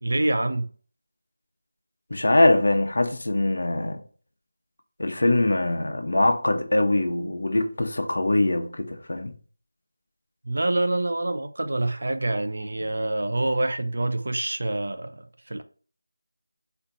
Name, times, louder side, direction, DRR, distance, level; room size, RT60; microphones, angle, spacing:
voice 1, 0.0-0.7 10.4-15.6, right 2 dB, 65° right, 0.6 m, -26 dB
voice 2, 2.1-4.0 5.0-9.3, left 2 dB, 65° left, 0.8 m, -22 dB
4.3 x 2.7 x 3.9 m
figure-of-eight pair, 170°, 0 cm